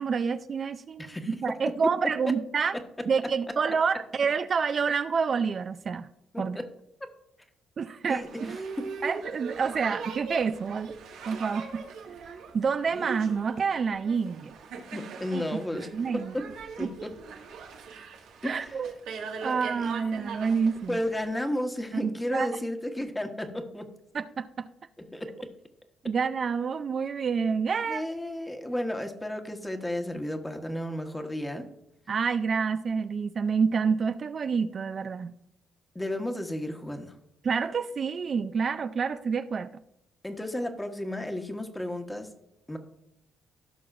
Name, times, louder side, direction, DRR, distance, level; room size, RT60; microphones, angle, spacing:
voice 1, 0.0-2.8 3.1-6.1 6.4-6.6 7.8-8.5 9.0-10.9 11.3-11.8 12.5-14.5 15.3-15.6 15.9-16.3 16.8-16.9 18.4-18.9 19.4-21.0 21.9-22.5 24.1-24.7 26.0-28.1 32.1-35.3 37.4-39.7, right 5 dB, 45° right, 11 dB, 0.4 m, -28 dB
voice 2, 1.0-1.4 2.3-2.4 6.3-6.7 8.1-8.5 8.8-8.9 14.9-15.9 16.1-16.2 16.8-17.1 18.4-18.7 19.4-19.9 20.9-23.9 25.0-25.5 27.9-31.7 35.9-37.1 40.2-42.3 42.7-42.8, left 1 dB, 10° left, 5 dB, 1.3 m, -33 dB
Boat Water vehicle, 8.1-21.3, right 5 dB, 90° right, 1.8 m, -40 dB
16.0 x 5.9 x 2.5 m, 0.82 s
cardioid pair, 90°, 0 cm